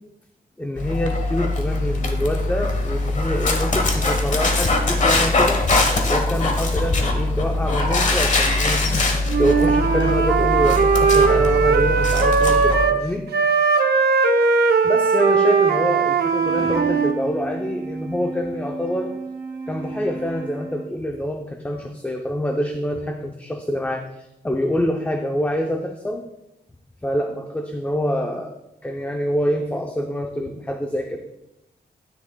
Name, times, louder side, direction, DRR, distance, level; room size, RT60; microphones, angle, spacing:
voice 1, 0.6-5.6 6.1-8.9 9.4-13.2 14.8-19.1 19.7-26.3 27.0-28.6 28.8-31.2, equal, 10° left, 3 dB, 0.5 m, -26 dB
Dog, 0.8-12.8, left 2 dB, 50° left, 1.1 m, -21 dB
Wind instrument woodwind instrument, 9.3-13.0 13.3-17.2, right 5 dB, 80° right, 0.7 m, -18 dB
Wind instrument woodwind instrument 2, 16.3-21.1, right 3 dB, 15° right, 2.1 m, -34 dB
10.5 x 9.8 x 2.2 m, 0.90 s
wide cardioid pair, 160°, 16 cm